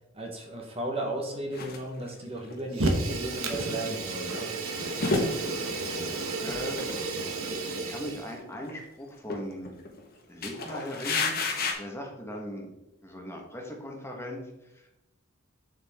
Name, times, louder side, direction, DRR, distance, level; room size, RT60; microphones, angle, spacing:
voice 1, 0.1-4.5, right 1 dB, 30° right, 1 dB, 1.3 m, -35 dB
sound 1, 1.5-1.8 2.4-2.5 3.0-4.2 4.5-6.2 6.5-7.0 7.3-7.4 7.7-8.1 8.5-8.8 9.3-10.0 10.4-11.7, left 3 dB, 45° left, 1.4 m, -32 dB
Fire, 2.7-8.3, right 2 dB, 85° right, 1.3 m, -32 dB
voice 2, 6.4-6.8 7.7-9.8 10.3-11.3 11.8-12.7 13.0-15.0, equal, 10° left, 0 dB, 1.4 m, -39 dB
7.5 x 7.4 x 3.7 m, 0.92 s
head